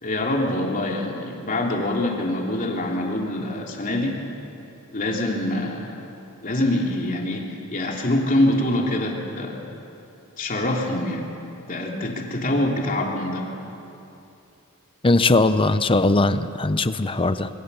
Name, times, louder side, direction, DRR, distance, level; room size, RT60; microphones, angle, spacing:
voice 1, 0.0-4.2 4.9-6.0 6.4-9.6 10.4-11.2 11.7-13.5, left 1 dB, 40° left, -1 dB, 3.3 m, -25 dB
voice 2, 15.0-17.5, left 2 dB, 25° left, 12 dB, 0.8 m, -19 dB
25.0 x 22.5 x 7.0 m, 2.8 s
head